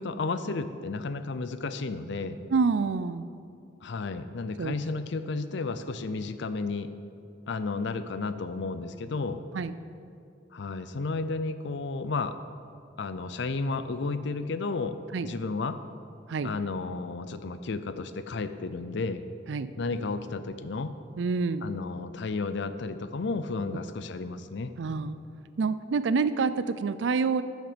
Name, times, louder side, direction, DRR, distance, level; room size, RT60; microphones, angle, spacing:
voice 1, 0.0-2.4 3.8-6.9 7.5-9.4 10.5-12.3 13.0-15.0 15.2-15.8 16.4-19.2 19.8-20.9 21.6-24.7, left 3 dB, 70° left, 11 dB, 0.5 m, -32 dB
voice 2, 2.5-3.3 4.6-4.7 9.5-9.7 15.1-15.3 16.3-16.5 19.5-19.7 21.2-21.7 24.8-25.2 25.6-27.4, right 4 dB, 70° right, 13 dB, 0.4 m, -27 dB
12.5 x 6.4 x 5.1 m, 2.5 s
head